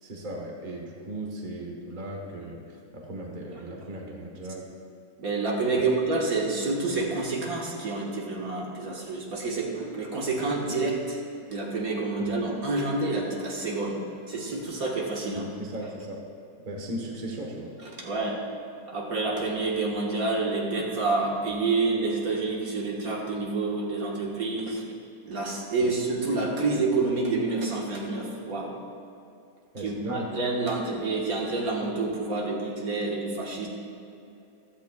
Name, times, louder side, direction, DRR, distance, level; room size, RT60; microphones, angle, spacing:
voice 1, 0.0-4.7 5.7-5.8 12.2-12.3 15.3-16.3 16.6-17.7 25.8-25.9 29.7-30.4, right 1 dB, 30° right, 0 dB, 1.4 m, -37 dB
voice 2, 5.2-11.2 11.5-15.5 18.0-18.4 18.9-24.8 25.2-28.8 29.8-33.7, right 3 dB, 65° right, -2 dB, 2.0 m, -28 dB
15.0 x 13.5 x 2.4 m, 2.7 s
omnidirectional pair, 1.6 m